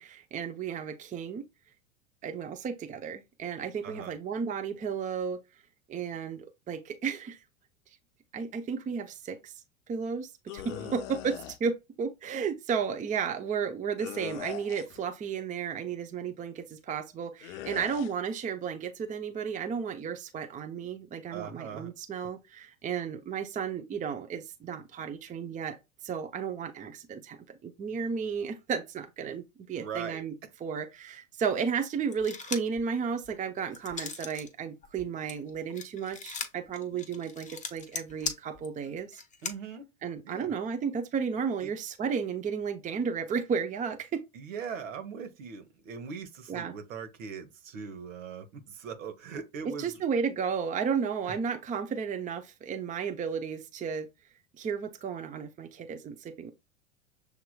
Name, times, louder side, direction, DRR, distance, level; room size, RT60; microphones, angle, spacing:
voice 1, 0.0-1.4 2.2-5.4 5.9-7.4 8.3-9.5 9.9-10.6 10.9-25.8 26.0-30.3 30.6-39.2 40.0-44.2 46.5-46.7 49.6-54.1 54.6-56.5, right 6 dB, 20° right, 0.7 m, -33 dB
sound 1, 10.5-11.6 14.0-15.0 17.4-18.1, left 11 dB, 60° left, 0.6 m, -41 dB
voice 2, 10.7-11.0 21.3-21.9 29.8-30.2 39.4-39.9 40.2-40.5 41.6-41.7 44.3-50.0 51.3-51.4, right 6 dB, 70° right, 1.3 m, -40 dB
sound 2, 32.1-32.8 33.2-34.5 34.8-39.5, left 5 dB, 20° left, 0.9 m, -38 dB
7.0 x 2.9 x 2.3 m
hypercardioid pair, 90°, 41 cm